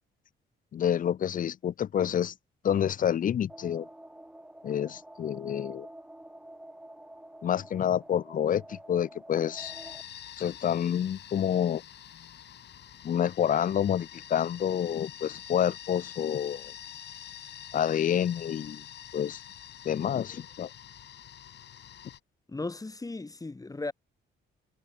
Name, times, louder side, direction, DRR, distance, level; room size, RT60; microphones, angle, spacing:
voice 1, 0.7-2.3 2.6-3.9 4.6-5.9 7.4-9.7 10.4-11.8 13.0-16.7 17.7-18.8 19.1-19.4 19.8-20.7, left 9 dB, 45° left, 0.5 m, -28 dB
sound 1, 3.5-10.0, right 1 dB, 5° right, 2.1 m, -48 dB
sound 2, 9.6-22.2, left 10 dB, 60° left, 1.3 m, -46 dB
voice 2, 22.5-23.9, left 3 dB, 15° left, 2.4 m, -36 dB
cardioid pair, 90°, 20 cm